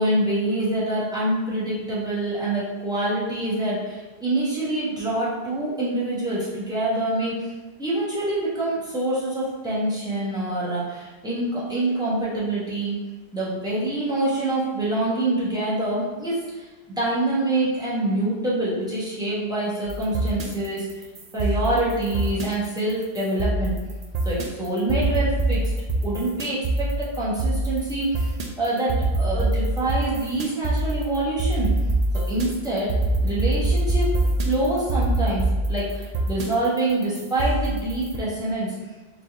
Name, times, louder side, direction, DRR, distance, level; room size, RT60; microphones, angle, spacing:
voice 1, 0.0-7.5 7.8-12.9 13.3-20.9 21.3-23.7 24.2-25.7 26.0-31.7 32.3-32.9 33.2-34.1 34.4-38.7, right 1 dB, 5° right, -9 dB, 1.3 m, -26 dB
sound 1, 19.9-38.2, right 2 dB, 50° right, 0.6 m, -24 dB
4.2 x 2.9 x 3.5 m, 1.2 s
omnidirectional pair, 1.1 m